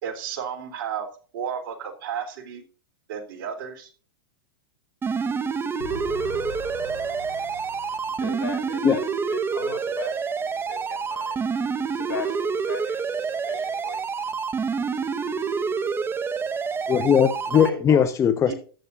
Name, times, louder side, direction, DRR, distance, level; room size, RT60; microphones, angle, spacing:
voice 1, 0.0-1.1 1.3-2.6 3.1-3.9 18.5-18.6, right 8 dB, 65° right, 7 dB, 3.3 m, -32 dB
sound 1, 5.0-17.7, right 5 dB, 20° right, 1.2 m, -28 dB
voice 2, 5.8-9.0 9.3-16.9 17.5-18.1, left 5 dB, 85° left, 4 dB, 5.3 m, -39 dB
voice 3, 16.9-18.5, left 8 dB, 25° left, 10 dB, 1.0 m, -19 dB
14.0 x 9.9 x 2.6 m, 0.39 s
hypercardioid pair, 115°, 12 cm